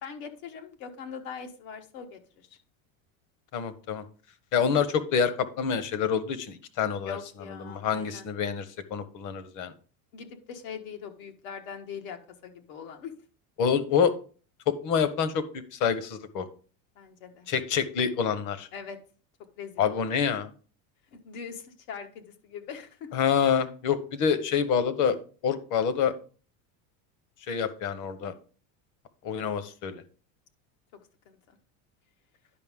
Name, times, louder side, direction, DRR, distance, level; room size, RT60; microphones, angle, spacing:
voice 1, 0.0-2.5 7.0-8.3 10.1-13.1 16.9-17.5 18.7-19.0 19.5-20.0 21.1-23.1 31.2-31.4, left 6 dB, 80° left, 5 dB, 1.6 m, -42 dB
voice 2, 3.5-4.0 4.5-7.2 7.6-8.6 8.9-9.7 13.6-14.1 14.7-15.4 15.7-16.4 17.5-18.7 19.8-20.5 23.1-25.2 25.4-26.1 27.5-28.3 29.2-30.0, left 7 dB, 45° left, 13 dB, 1.1 m, -27 dB
10.5 x 5.3 x 3.6 m, 0.39 s
supercardioid pair, 135°, 42 cm